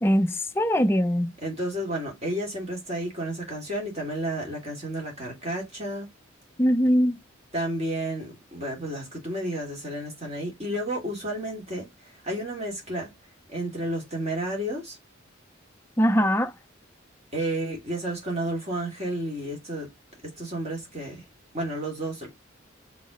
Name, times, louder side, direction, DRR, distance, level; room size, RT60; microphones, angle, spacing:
voice 1, 0.0-1.3 6.6-7.2 16.0-16.5, equal, 10° left, 0.4 m, -21 dB
voice 2, 1.4-6.1 7.5-11.9 12.2-13.1 13.5-15.0 17.3-19.9 20.4-21.2 21.5-22.3, right 1 dB, 30° right, 2.6 m, -31 dB
5.8 x 3.6 x 5.2 m
head